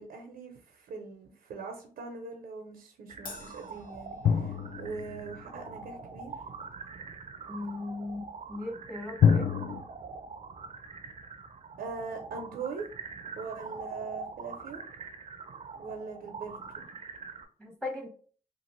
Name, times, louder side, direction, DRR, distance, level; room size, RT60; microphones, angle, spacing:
voice 1, 0.0-6.3 11.8-12.9 13.3-14.8 15.8-16.8, right 4 dB, 90° right, 3 dB, 0.6 m, -41 dB
sound 1, 3.1-17.4, right 4 dB, 45° right, 0.4 m, -44 dB
Crash cymbal, 3.3-4.9, left 3 dB, 70° left, 0.9 m, -48 dB
sound 2, 4.2-5.9 9.2-9.8, left 7 dB, 45° left, 0.4 m, -26 dB
voice 2, 7.5-9.5 17.6-18.1, left 2 dB, 5° left, 2 dB, 0.9 m, -38 dB
2.9 x 2.4 x 3.0 m, 0.43 s
cardioid pair, 75°, 15 cm